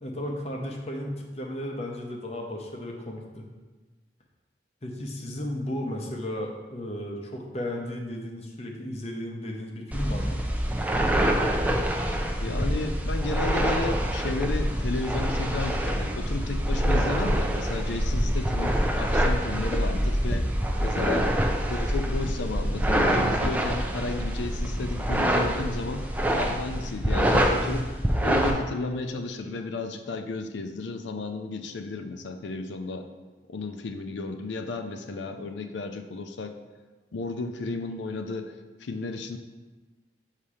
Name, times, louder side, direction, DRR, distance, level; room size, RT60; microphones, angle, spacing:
voice 1, 0.0-3.5 4.8-10.4 21.1-21.3, left 1 dB, 35° left, 1 dB, 0.7 m, -34 dB
sound 1, 9.9-28.5, equal, 10° right, 0.4 m, -25 dB
voice 2, 12.4-20.5 20.8-21.3 21.7-27.9 28.2-33.1 33.5-36.6 37.1-38.5 38.8-39.4, left 3 dB, 85° left, 7 dB, 0.5 m, -33 dB
7.1 x 2.8 x 4.8 m, 1.2 s
head